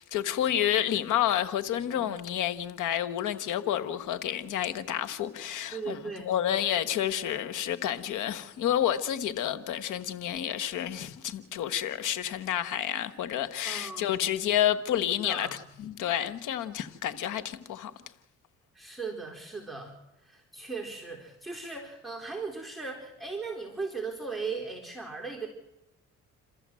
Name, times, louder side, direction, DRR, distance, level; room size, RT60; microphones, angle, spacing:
voice 1, 0.0-6.0 6.2-15.5 15.8-17.9, left 11 dB, 85° left, 1.5 m, -29 dB
voice 2, 5.7-6.3 13.7-14.1 15.2-15.6 18.7-19.9 20.2-25.5, right 4 dB, ahead, 4.3 m, -37 dB
28.0 x 14.0 x 7.7 m
cardioid pair, 90°, 30 cm